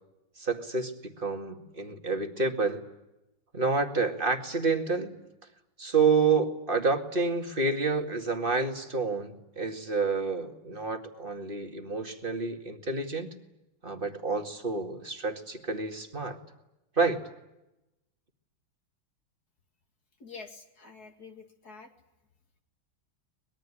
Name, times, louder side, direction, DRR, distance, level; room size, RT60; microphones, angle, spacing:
voice 1, 0.4-2.8 3.5-5.1 5.8-13.3 13.8-16.4 17.0-17.2, right 4 dB, 25° right, 5 dB, 2.2 m, -29 dB
voice 2, 20.2-21.9, left 4 dB, 50° left, 4 dB, 2.7 m, -47 dB
24.0 x 21.5 x 9.9 m, 0.93 s
omnidirectional pair, 2.2 m